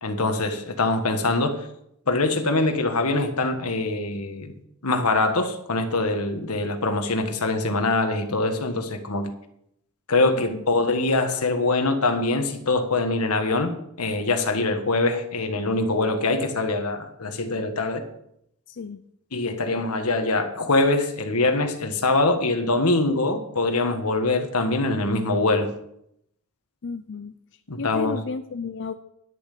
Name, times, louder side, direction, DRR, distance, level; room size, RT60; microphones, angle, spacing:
voice 1, 0.0-1.7 2.1-4.5 4.8-9.3 10.1-18.0 19.3-25.7 27.7-28.2, left 2 dB, 90° left, 1.5 m, -23 dB
voice 2, 18.7-19.0 26.8-27.3 27.8-28.9, left 5 dB, 55° left, 0.5 m, -32 dB
11.0 x 7.1 x 6.7 m
head